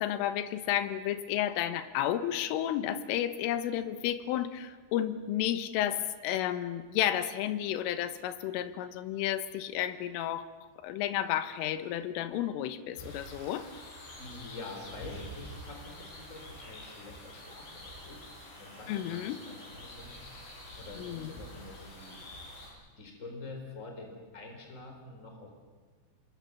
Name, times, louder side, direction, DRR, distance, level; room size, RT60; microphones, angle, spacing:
voice 1, 0.0-10.5 10.8-13.7 18.9-19.4 21.0-21.3, left 11 dB, 90° left, 11 dB, 3.7 m, -32 dB
sound 1, 13.0-22.7, left 1 dB, 65° left, 9.3 m, -47 dB
voice 2, 14.2-22.2 22.6-22.7 23.0-25.5, left 3 dB, 15° left, 2 dB, 4.2 m, -47 dB
27.0 x 23.0 x 7.1 m, 1.4 s
omnidirectional pair, 5.6 m